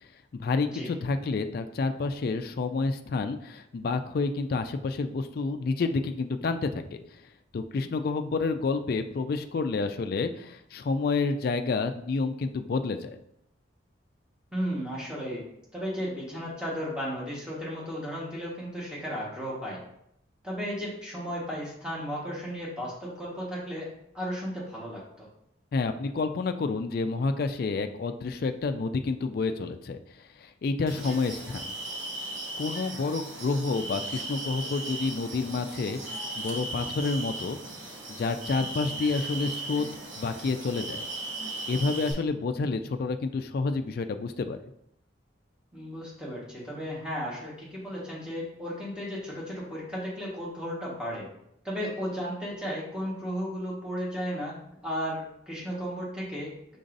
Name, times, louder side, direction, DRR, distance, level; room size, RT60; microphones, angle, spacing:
voice 1, 0.3-7.0 7.5-13.2 25.7-31.7 32.6-37.6 38.1-39.9 40.2-41.0 41.7-44.6, left 4 dB, 50° left, 7 dB, 0.3 m, -29 dB
voice 2, 14.5-15.4 15.7-19.8 20.4-23.9 24.1-25.2 31.0-31.1 45.7-51.3 51.6-56.5, equal, 5° right, -7 dB, 1.3 m, -34 dB
sound 1, 30.9-42.1, right 2 dB, 75° right, 1.1 m, -37 dB
5.2 x 3.8 x 2.6 m, 0.76 s
head